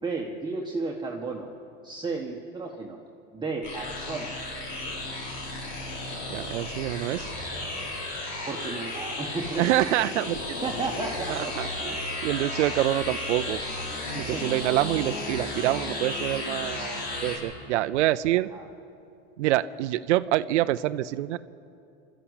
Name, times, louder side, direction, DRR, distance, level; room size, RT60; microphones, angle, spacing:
voice 1, 0.0-1.5 1.8-3.0 3.3-4.3 8.5-9.6 10.6-11.5 11.9-12.0 14.1-14.4 18.5-18.7, right 3 dB, 15° right, -1 dB, 1.6 m, -33 dB
sound 1, 3.6-17.4, left 2 dB, 65° left, 6.6 m, -34 dB
voice 2, 6.3-7.3 9.6-10.6 11.3-13.6 14.3-18.5 19.4-21.4, right 15 dB, 85° right, 13 dB, 0.6 m, -26 dB
25.5 x 13.0 x 8.2 m, 2.6 s
supercardioid pair, 110°, 34 cm